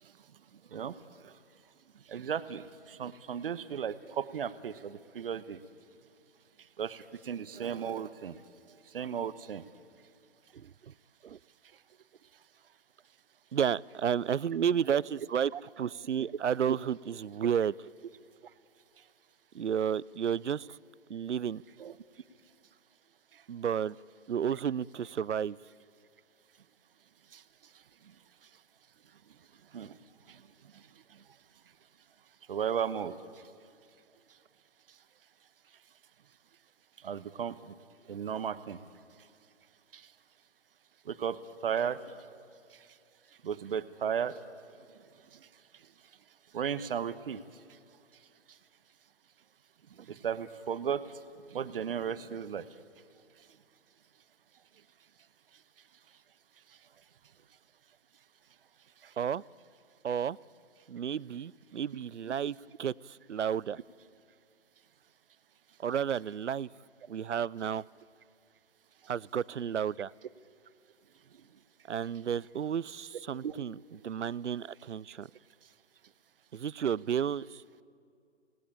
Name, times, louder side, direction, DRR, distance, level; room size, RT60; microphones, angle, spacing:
voice 1, 2.1-2.6 3.0-5.6 6.8-8.3 8.9-9.6 15.5-15.6 16.7-16.8 21.8-21.9 29.7-29.9 32.5-33.1 37.0-37.5 38.1-38.8 41.1-42.0 43.4-44.3 46.5-47.4 50.2-51.0 51.5-52.7 73.4-73.5, right 8 dB, 50° right, 15 dB, 1.1 m, -34 dB
voice 2, 13.5-15.5 15.8-17.7 19.5-20.8 21.1-21.6 23.5-24.0 24.3-25.6 59.2-59.4 60.0-60.4 60.9-63.8 65.8-66.7 67.1-67.8 69.1-70.1 71.9-73.8 74.0-75.3 76.5-77.8, right 8 dB, 80° right, 24 dB, 0.5 m, -32 dB
27.5 x 18.5 x 8.7 m, 2.4 s
figure-of-eight pair, 130°, 35 cm